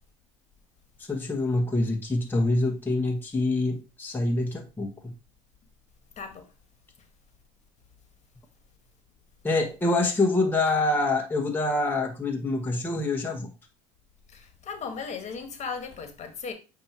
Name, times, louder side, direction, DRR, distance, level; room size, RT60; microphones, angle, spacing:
voice 1, 1.0-5.1 9.4-13.5, left 2 dB, 10° left, 1.3 m, -26 dB
voice 2, 6.2-6.5 14.3-16.5, left 5 dB, 40° left, 1.6 m, -36 dB
8.5 x 2.9 x 4.5 m
supercardioid pair, 90°, 18 cm